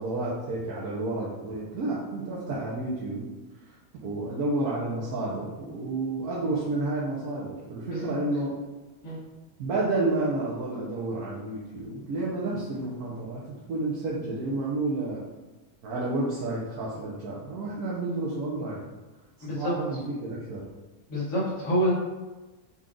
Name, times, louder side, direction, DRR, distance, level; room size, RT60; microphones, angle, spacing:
voice 1, 0.0-3.3 4.0-8.5 9.6-13.4 13.7-15.2 15.8-18.9 19.5-20.6, right 2 dB, 80° right, -6 dB, 1.3 m, -30 dB
voice 2, 7.8-8.1 9.0-9.2 19.4-19.7 21.1-21.9, equal, 60° left, -7 dB, 1.8 m, -27 dB
5.5 x 2.4 x 3.8 m, 1.2 s
omnidirectional pair, 1.6 m